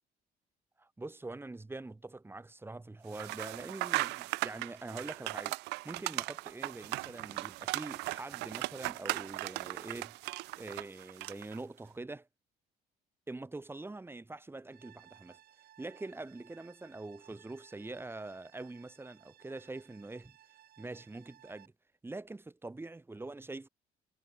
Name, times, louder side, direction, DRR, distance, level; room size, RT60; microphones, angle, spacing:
voice 1, 0.8-5.6 5.8-10.2 10.6-12.3 13.3-15.4 15.8-20.3 20.8-21.7 22.0-23.7, right 2 dB, 15° right, 2.9 m, -44 dB
sound 1, 3.1-11.6, right 22 dB, 85° right, 0.5 m, -38 dB
sound 2, 14.7-21.7, right 12 dB, 60° right, 4.3 m, -61 dB
cardioid pair, 110°, 17 cm